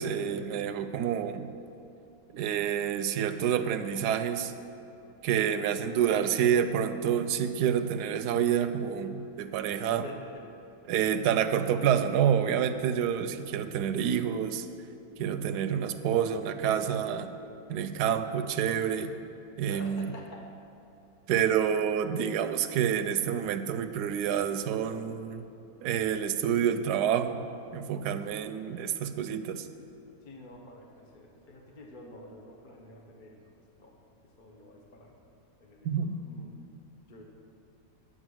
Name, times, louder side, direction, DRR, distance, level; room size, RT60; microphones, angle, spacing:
voice 1, 0.0-1.5 2.3-4.5 5.2-10.0 10.9-14.7 15.2-17.3 17.7-19.1 19.6-20.1 21.3-25.5 25.8-27.5 27.7-29.7 35.8-36.1, right 8 dB, 80° right, 9 dB, 1.1 m, -28 dB
voice 2, 9.7-10.5 19.7-20.5 21.3-21.6 30.2-33.4 33.8-34.0 34.2-35.2 35.6-36.6 37.1-37.2, left 1 dB, 35° left, 1 dB, 1.0 m, -48 dB
10.0 x 7.8 x 6.3 m, 2.9 s
omnidirectional pair, 1.8 m